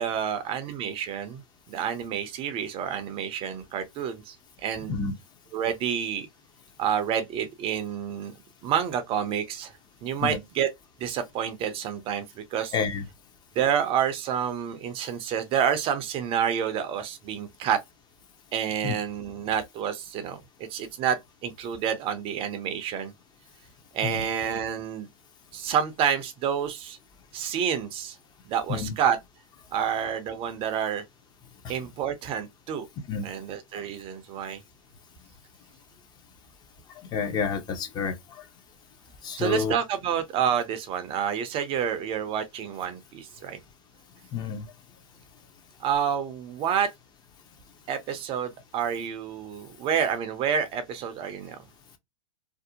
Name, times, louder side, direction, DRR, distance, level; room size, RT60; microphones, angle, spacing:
voice 1, 0.0-4.4 4.6-5.0 5.5-6.3 6.8-8.3 8.6-9.7 10.0-10.7 11.0-12.7 13.6-17.8 18.5-23.1 23.9-25.1 25.5-27.0 27.3-28.2 28.5-29.2 29.7-31.0 31.7-32.9 33.2-34.6 39.4-43.6 45.8-46.9 47.9-51.6, right 8 dB, 30° right, 0.5 m, -28 dB
voice 2, 12.7-13.0 18.8-18.9 24.0-24.2 28.7-28.9 29.7-29.8 31.6-31.7 33.1-33.3 37.1-38.4 39.2-39.7 44.3-44.6, left 6 dB, 25° left, 0.5 m, -29 dB
2.6 x 2.0 x 2.7 m
hypercardioid pair, 105°, 18 cm